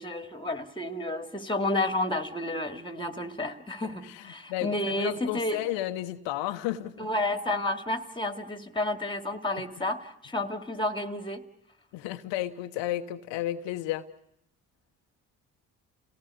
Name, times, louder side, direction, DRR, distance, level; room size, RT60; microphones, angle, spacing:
voice 1, 0.0-5.6 7.0-11.4, left 1 dB, 10° left, 9 dB, 2.4 m, -31 dB
voice 2, 3.8-7.1 11.9-14.0, left 14 dB, 75° left, 8 dB, 1.0 m, -33 dB
29.0 x 17.5 x 8.5 m, 0.80 s
hypercardioid pair, 50°, 44 cm